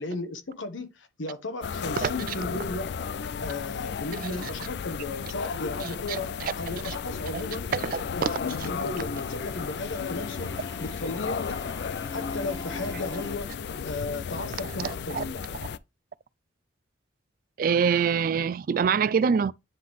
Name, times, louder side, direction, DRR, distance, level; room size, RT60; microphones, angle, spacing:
voice 1, 0.0-2.9 3.4-7.7 8.2-10.5 10.8-11.7 12.1-13.5 13.8-15.5, left 2 dB, 85° left, 1.1 m, -35 dB
sound 1, 1.6-15.8, left 6 dB, 60° left, 0.3 m, -34 dB
voice 2, 5.8-6.5 6.8-7.0 7.3-7.4 7.7-8.3 14.8-15.2 17.6-19.5, right 6 dB, 45° right, 0.3 m, -25 dB
sound 2, 6.9-13.4, left 3 dB, 20° left, 0.6 m, -43 dB
9.5 x 3.6 x 3.1 m
head